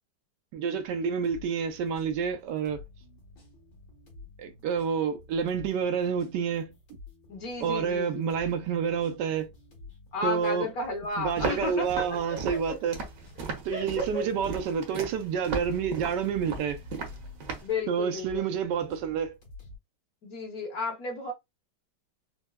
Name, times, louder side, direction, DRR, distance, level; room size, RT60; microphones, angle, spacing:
voice 1, 0.5-2.8 4.4-6.7 7.6-9.5 10.2-10.7 11.2-13.0 13.6-16.8 17.9-19.4, right 7 dB, 80° right, 1.2 m, -29 dB
sound 1, 0.7-19.8, left 3 dB, 75° left, 2.0 m, -50 dB
voice 2, 7.3-8.3 10.1-12.8 13.7-14.2 17.6-18.4 20.2-21.3, left 3 dB, 60° left, 1.4 m, -33 dB
Walk footsteps, 11.4-17.7, right 4 dB, 60° right, 1.1 m, -36 dB
4.4 x 2.0 x 2.2 m
omnidirectional pair, 1.9 m